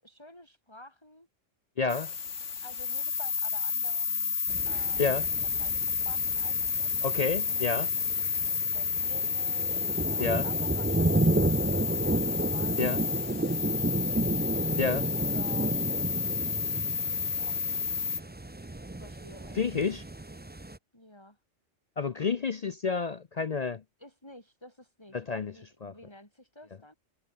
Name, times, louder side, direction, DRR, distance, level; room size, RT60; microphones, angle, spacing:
voice 1, 0.0-1.3 2.6-7.7 8.7-14.6 15.1-16.2 16.9-17.8 19.0-19.9 20.9-21.4 24.0-26.9, left 1 dB, 20° left, 6.8 m, -52 dB
voice 2, 1.8-2.1 5.0-5.3 7.0-7.9 10.2-10.4 12.8-13.0 14.8-15.1 19.5-20.0 22.0-23.8 25.1-25.5 25.8-25.9, left 5 dB, 45° left, 0.5 m, -29 dB
sound 1, 1.9-18.2, left 5 dB, 75° left, 2.1 m, -31 dB
sound 2, 4.5-20.8, right 2 dB, 10° right, 0.5 m, -32 dB
omnidirectional pair, 1.3 m